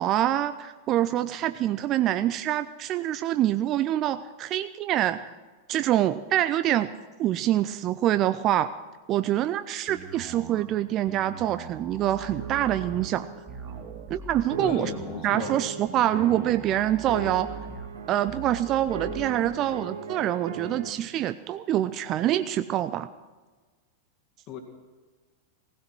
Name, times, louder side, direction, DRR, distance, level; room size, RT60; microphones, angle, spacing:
voice 1, 0.0-5.3 5.7-6.9 7.2-8.7 9.1-13.3 14.1-14.9 15.2-17.6 18.1-23.1, right 12 dB, 35° right, 12 dB, 0.5 m, -25 dB
sound 1, 9.9-19.5, right 5 dB, 20° right, 2.1 m, -42 dB
sound 2, 12.4-14.1 14.5-16.7 17.1-18.3 18.9-20.9, right 5 dB, 65° right, 2.3 m, -38 dB
voice 2, 14.6-15.6 24.5-24.6, left 6 dB, 40° left, 4 dB, 2.1 m, -36 dB
18.5 x 16.5 x 4.6 m, 1.3 s
figure-of-eight pair, 90°, 0 cm